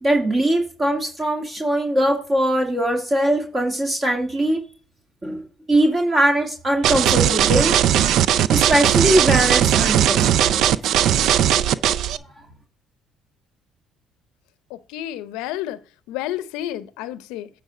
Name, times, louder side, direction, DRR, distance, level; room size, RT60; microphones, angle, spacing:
voice 1, 0.0-4.6 5.2-5.4 5.7-7.8 8.5-10.8, right 1 dB, 30° right, 2.1 m, -21 dB
sound 1, 6.8-12.2, right 10 dB, 65° right, 0.4 m, -18 dB
voice 2, 14.7-15.8 16.1-17.5, left 13 dB, 80° left, 0.6 m, -30 dB
9.3 x 4.5 x 5.0 m
supercardioid pair, 65°, 0 cm